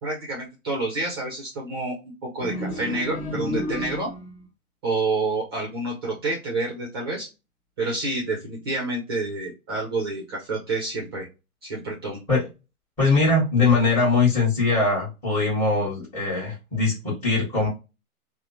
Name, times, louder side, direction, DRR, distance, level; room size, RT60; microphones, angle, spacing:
voice 1, 0.0-4.1 4.8-7.3 7.8-11.3 11.6-12.2, right 2 dB, 20° right, -1 dB, 0.4 m, -28 dB
sound 1, 2.4-4.4, left 1 dB, 40° left, 1.1 m, -31 dB
voice 2, 13.0-17.7, left 3 dB, 15° left, -11 dB, 1.4 m, -21 dB
3.0 x 2.0 x 2.6 m, 0.28 s
hypercardioid pair, 135°, 44 cm